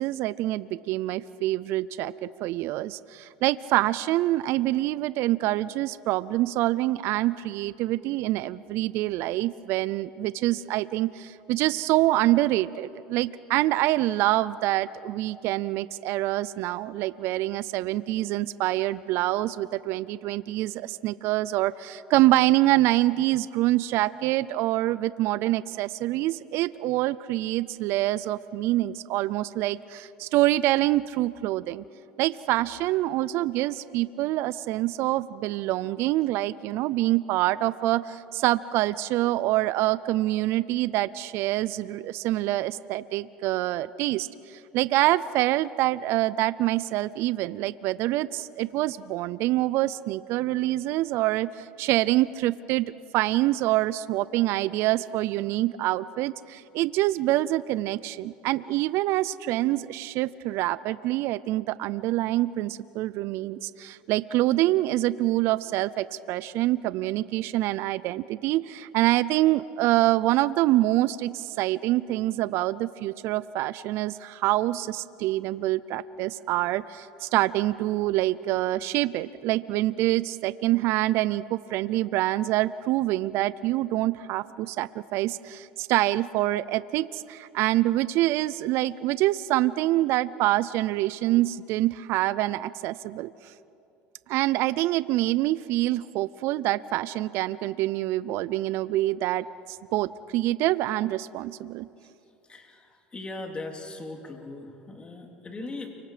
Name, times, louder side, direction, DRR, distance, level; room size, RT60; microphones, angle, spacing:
voice 1, 0.0-31.8 32.2-52.9 53.1-93.5 94.3-101.9, right 16 dB, 65° right, 17 dB, 0.5 m, -26 dB
voice 2, 102.5-105.9, left 2 dB, 20° left, 2 dB, 3.4 m, -39 dB
29.5 x 24.5 x 5.1 m, 2.6 s
supercardioid pair, 100°, 5 cm